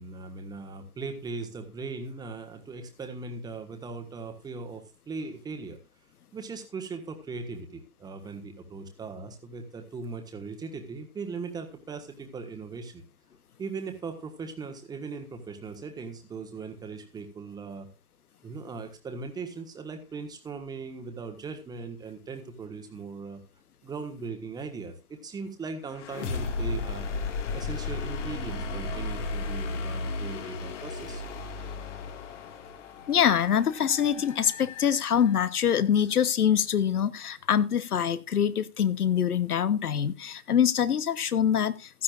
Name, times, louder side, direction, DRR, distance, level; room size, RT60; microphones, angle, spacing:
voice 1, 0.0-5.8 6.3-13.0 13.6-17.9 18.4-23.4 23.8-27.1 27.5-31.2, right 4 dB, 10° right, 5 dB, 1.4 m, -39 dB
sound 1, 25.9-35.7, left 3 dB, 50° left, 2.1 m, -35 dB
voice 2, 33.1-41.9, left 8 dB, 75° left, 16 dB, 1.1 m, -24 dB
15.5 x 12.0 x 2.5 m, 0.27 s
hypercardioid pair, 130°, 46 cm